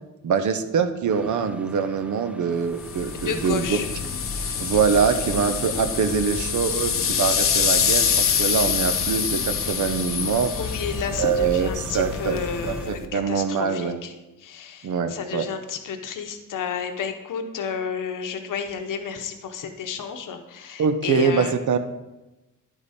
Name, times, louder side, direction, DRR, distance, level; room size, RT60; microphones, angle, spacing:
voice 1, 0.2-3.8 4.6-10.5 11.2-14.0 14.8-15.5 20.8-21.8, right 6 dB, 65° right, 10 dB, 0.7 m, -24 dB
sound 1, 1.1-12.9, right 1 dB, 5° right, 0.4 m, -43 dB
sound 2, 2.8-13.1, left 7 dB, 45° left, 0.7 m, -26 dB
voice 2, 3.1-3.9 10.6-14.1 14.4-21.5, left 6 dB, 75° left, 6 dB, 0.9 m, -31 dB
sound 3, 7.4-12.6, equal, 90° right, 1.6 m, -46 dB
10.0 x 4.9 x 4.2 m, 1.0 s
cardioid pair, 105°, 32 cm